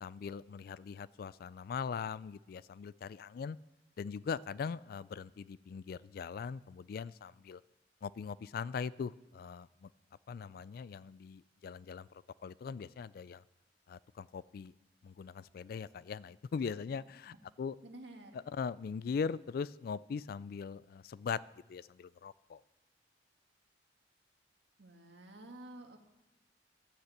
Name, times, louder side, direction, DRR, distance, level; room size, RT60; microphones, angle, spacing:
voice 1, 0.0-3.6 4.0-7.6 8.0-9.9 10.3-13.4 13.9-14.7 15.0-17.8 18.3-21.4 21.7-22.6, left 6 dB, 55° left, 20 dB, 0.3 m, -40 dB
voice 2, 17.8-18.4 24.8-26.0, right 1 dB, 85° right, 4 dB, 1.6 m, -51 dB
11.5 x 6.6 x 8.3 m, 1.0 s
head